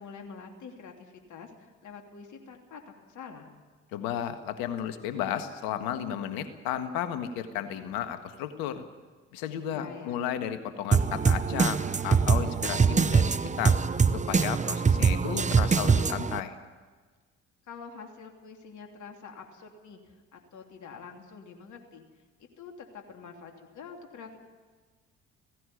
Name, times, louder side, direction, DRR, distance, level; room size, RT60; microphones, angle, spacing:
voice 1, 0.0-3.5 9.7-10.2 17.7-22.0 22.4-24.4, left 5 dB, 55° left, 3 dB, 3.0 m, -46 dB
voice 2, 3.9-8.8 9.3-13.8 14.1-16.5, left 10 dB, 70° left, 9 dB, 1.7 m, -33 dB
sound 1, 10.9-16.4, right 5 dB, 20° right, 0.8 m, -24 dB
16.5 x 16.0 x 9.9 m, 1.4 s
hypercardioid pair, 50°, 36 cm